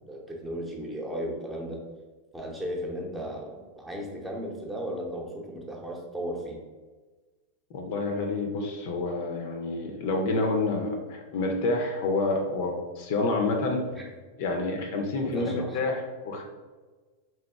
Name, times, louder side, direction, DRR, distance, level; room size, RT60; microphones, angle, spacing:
voice 1, 0.1-1.8 2.3-6.6 13.9-14.1 15.2-15.8, equal, 10° right, -1 dB, 0.8 m, -35 dB
voice 2, 7.7-13.8 14.4-16.4, left 3 dB, 50° left, 3 dB, 0.5 m, -28 dB
3.5 x 2.9 x 3.4 m, 1.3 s
figure-of-eight pair, 90°, 0 cm